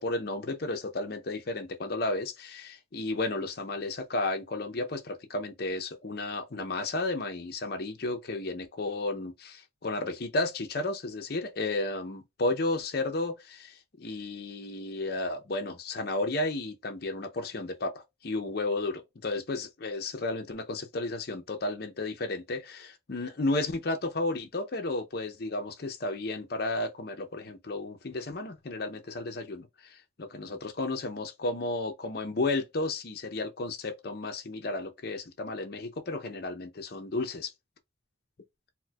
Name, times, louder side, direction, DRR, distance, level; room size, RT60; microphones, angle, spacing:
voice 1, 0.0-37.5, left 2 dB, 50° left, 0.6 m, -33 dB
4.3 x 2.1 x 2.2 m
head